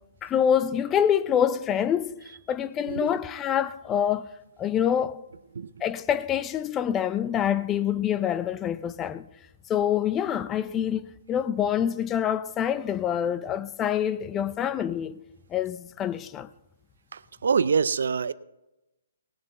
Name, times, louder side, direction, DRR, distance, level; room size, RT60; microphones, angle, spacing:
voice 1, 0.2-2.2 2.5-4.3 4.6-5.2 5.8-9.3 9.7-11.0 11.3-15.2 15.5-16.5, left 9 dB, 20° left, 0.6 m, -26 dB
voice 2, 17.1-18.3, right 6 dB, 75° right, 0.6 m, -25 dB
19.0 x 6.9 x 5.4 m
hypercardioid pair, 140°, 0 cm